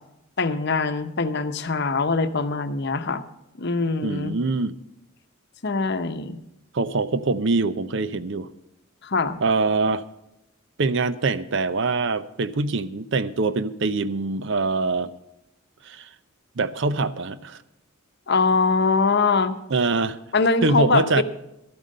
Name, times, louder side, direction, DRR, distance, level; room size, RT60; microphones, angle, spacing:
voice 1, 0.4-3.2 3.6-4.4 5.6-6.4 9.0-9.4 18.3-19.6 20.3-21.2, left 4 dB, 55° left, 10 dB, 0.8 m, -22 dB
voice 2, 4.0-4.7 6.7-8.5 9.4-10.0 10.8-15.1 15.9-16.1 16.6-17.6 19.7-20.2 20.6-21.2, right 3 dB, 60° right, 15 dB, 0.6 m, -24 dB
12.5 x 9.1 x 6.5 m, 0.86 s
head